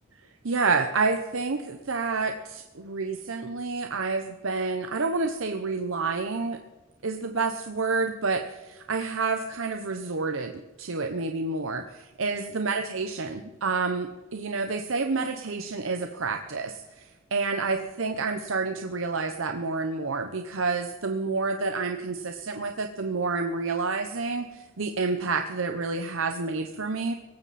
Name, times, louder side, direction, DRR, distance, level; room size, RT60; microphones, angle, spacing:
voice 1, 0.4-6.6 7.0-17.0 17.3-27.1, right 4 dB, 80° right, 6 dB, 0.9 m, -29 dB
18.0 x 15.0 x 4.2 m, 1.1 s
head